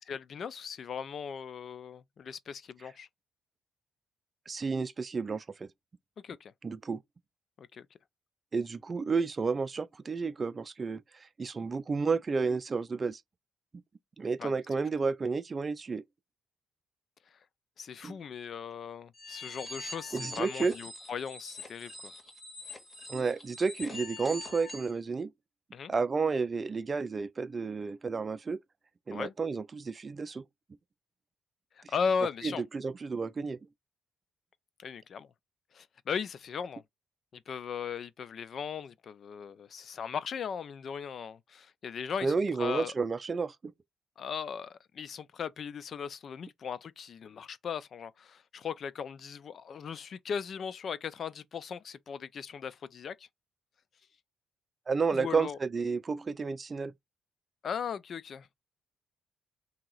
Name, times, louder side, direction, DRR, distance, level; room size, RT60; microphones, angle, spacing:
voice 1, 0.1-3.1 6.2-6.5 7.6-7.9 14.4-14.5 17.8-22.1 25.7-25.9 29.1-29.3 31.9-32.6 34.8-35.3 35.7-36.8 37.3-42.9 44.2-53.3 55.1-55.6 57.6-58.5, left 6 dB, 55° left, 0.4 m, -38 dB
voice 2, 4.5-5.7 6.6-7.0 8.5-11.0 11.4-13.2 14.2-16.0 18.0-18.2 20.1-20.7 23.1-25.3 25.9-28.6 29.1-30.4 31.8-31.9 32.4-33.6 42.2-43.6 54.9-56.9, right 4 dB, 35° right, 0.4 m, -31 dB
sound 1, 19.1-24.9, left 2 dB, 30° left, 1.9 m, -44 dB
2.9 x 2.8 x 3.8 m
cardioid pair, 90°, 0 cm